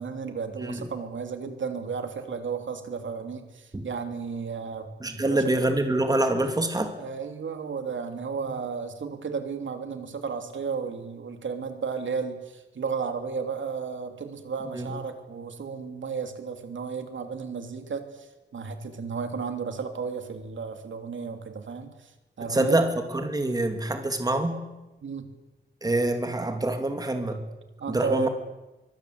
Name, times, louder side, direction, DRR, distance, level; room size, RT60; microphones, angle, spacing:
voice 1, 0.0-5.5 7.0-22.1 22.4-22.8 25.0-25.3 27.8-28.3, right 5 dB, 80° right, 7 dB, 3.0 m, -33 dB
voice 2, 5.0-6.9 14.7-14.9 22.5-22.9 23.1-24.6 25.8-27.4 27.9-28.3, right 2 dB, 20° right, 6 dB, 2.6 m, -25 dB
24.5 x 24.0 x 8.2 m, 1.0 s
wide cardioid pair, 175°, 19 cm